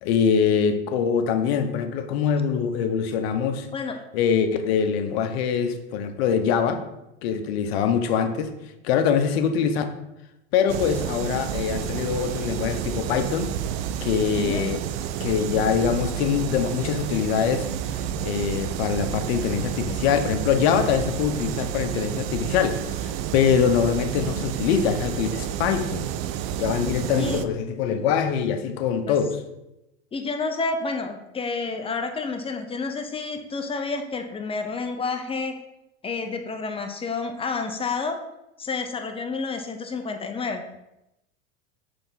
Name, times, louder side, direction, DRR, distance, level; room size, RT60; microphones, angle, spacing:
voice 1, 0.0-3.7 4.1-6.8 7.2-8.5 8.8-9.9 10.5-13.5 14.0-14.8 15.2-26.1 26.6-29.4, left 7 dB, 70° left, 8 dB, 0.9 m, -24 dB
sound 1, 10.7-27.5, right 10 dB, 65° right, 0.6 m, -30 dB
voice 2, 30.1-35.5 36.0-38.2 38.6-40.6, left 4 dB, 15° left, 6 dB, 0.6 m, -29 dB
6.8 x 3.4 x 5.6 m, 0.90 s
supercardioid pair, 125°, 32 cm